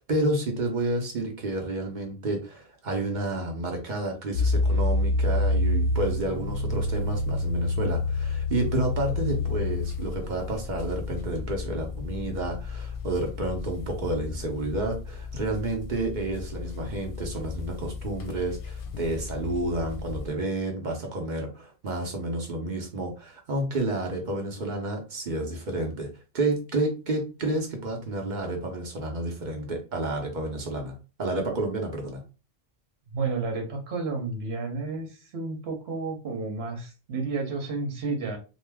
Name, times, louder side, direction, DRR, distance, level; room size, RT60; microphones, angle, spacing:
voice 1, 0.0-26.1 26.3-32.2, right 2 dB, 50° right, 2 dB, 0.8 m, -30 dB
sound 1, 4.3-20.3, left 2 dB, 65° left, 0.7 m, -30 dB
voice 2, 33.1-38.4, right 3 dB, 85° right, 2 dB, 1.0 m, -31 dB
2.6 x 2.2 x 3.3 m, 0.32 s
omnidirectional pair, 1.0 m